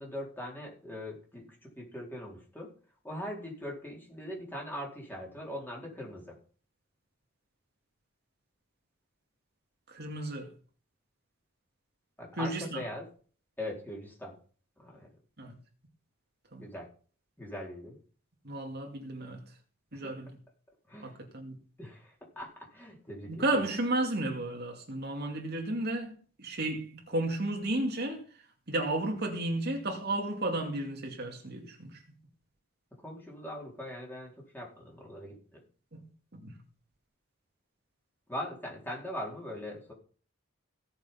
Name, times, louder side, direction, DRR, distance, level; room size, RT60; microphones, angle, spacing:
voice 1, 0.0-2.7 3.0-6.4 12.2-13.0 13.6-14.3 14.8-15.1 16.6-16.9 17.4-18.0 19.9-20.2 20.9-21.2 21.8-23.7 33.0-35.6 38.3-39.9, left 1 dB, 10° left, 4.4 m, -41 dB
voice 2, 9.9-10.5 12.4-12.8 15.4-15.5 16.5-16.7 18.4-19.4 19.9-20.3 21.0-21.6 23.3-28.2 28.7-32.0 36.3-36.5, right 1 dB, 50° right, 2.5 m, -33 dB
16.5 x 7.1 x 5.8 m
head